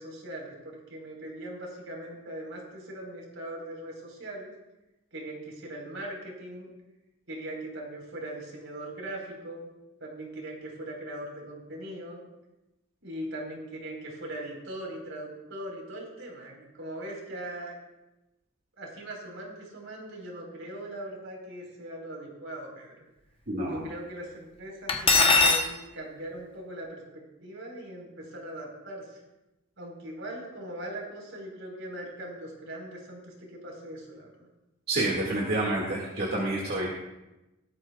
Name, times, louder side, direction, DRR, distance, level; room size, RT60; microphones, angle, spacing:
voice 1, 0.0-4.5 5.1-6.7 7.3-9.7 10.0-12.2 13.0-17.7 18.8-22.9 23.7-29.2 29.8-34.5, right 1 dB, 70° right, -1 dB, 4.1 m, -40 dB
voice 2, 23.5-23.8 34.9-36.9, right 2 dB, 50° right, -4 dB, 2.0 m, -28 dB
Cutlery silverware, 24.9-25.7, left 3 dB, 25° left, 0.9 m, -20 dB
17.5 x 13.0 x 2.3 m, 0.97 s
head